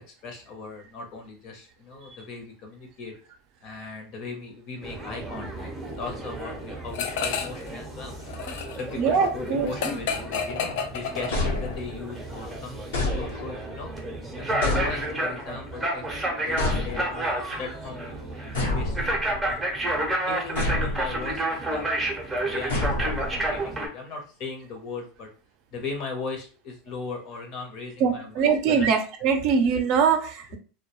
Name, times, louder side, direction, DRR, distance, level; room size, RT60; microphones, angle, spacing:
voice 1, 0.0-3.1 3.6-5.7 6.0-8.2 8.7-12.9 13.1-13.9 14.4-16.0 16.4-19.9 20.3-22.1 22.4-25.3 25.7-28.9 29.4-29.5, left 4 dB, 50° left, 3 dB, 0.8 m, -38 dB
sound 1, 4.8-23.9, right 1 dB, 10° right, 0.6 m, -31 dB
sound 2, 6.9-7.7 8.0-11.8, left 6 dB, 70° left, 0.4 m, -31 dB
voice 2, 9.0-9.7 28.0-30.6, right 6 dB, 55° right, 6 dB, 0.5 m, -22 dB
sound 3, 11.3-12.2 12.9-13.8 14.6-15.5 16.6-17.4 18.5-19.6 20.6-21.3 22.7-23.6, left 2 dB, 85° left, 1.0 m, -29 dB
2.2 x 2.2 x 3.0 m, 0.37 s
supercardioid pair, 130°, 0 cm